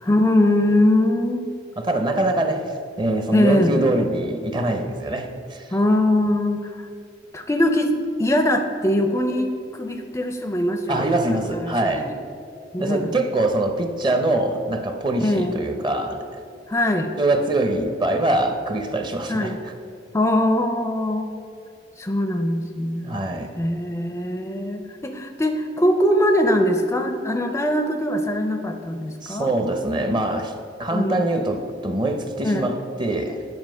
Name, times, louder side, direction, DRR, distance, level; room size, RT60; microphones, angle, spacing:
voice 1, 0.0-1.5 3.3-3.8 5.7-6.9 7.3-11.2 11.5-12.1 12.7-13.1 15.2-15.6 16.7-17.1 19.3-19.6 20.1-21.3 22.0-23.1 23.6-29.5 30.9-31.2 32.4-32.7, left 1 dB, 15° left, 6 dB, 0.4 m, -22 dB
voice 2, 1.8-2.6 3.0-5.7 10.9-12.1 12.8-16.4 17.2-19.6 23.0-23.5 29.2-30.5 30.8-33.5, right 2 dB, 25° right, 6 dB, 0.7 m, -23 dB
9.7 x 4.9 x 6.2 m, 2.4 s
head